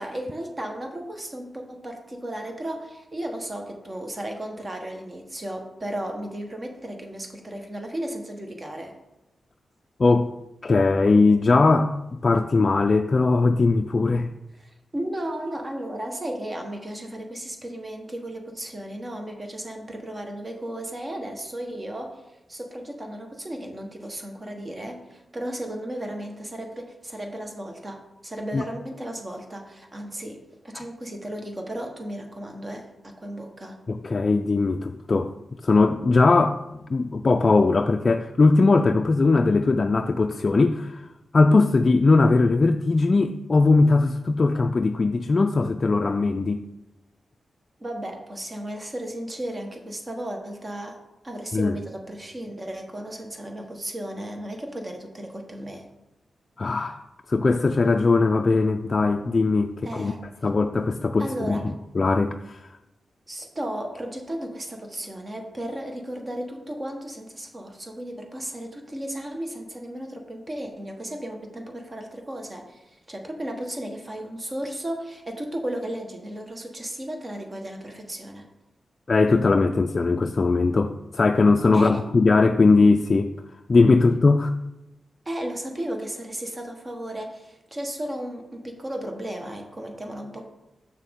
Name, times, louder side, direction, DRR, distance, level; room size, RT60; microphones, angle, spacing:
voice 1, 0.0-8.9 14.6-22.2 22.5-33.8 47.8-51.0 51.2-55.9 59.8-60.2 61.2-61.7 63.3-78.5 81.7-82.0 85.2-90.4, right 1 dB, 30° right, 3 dB, 1.2 m, -34 dB
voice 2, 10.0-10.3 10.6-14.3 28.5-28.6 30.7-30.8 33.9-35.3 35.6-41.0 41.3-46.6 51.5-51.8 56.6-57.0 57.3-60.1 60.4-62.7 79.1-83.3 83.7-84.5, left 3 dB, 40° left, 5 dB, 0.3 m, -20 dB
6.6 x 6.5 x 3.7 m, 0.95 s
cardioid pair, 80°, 0 cm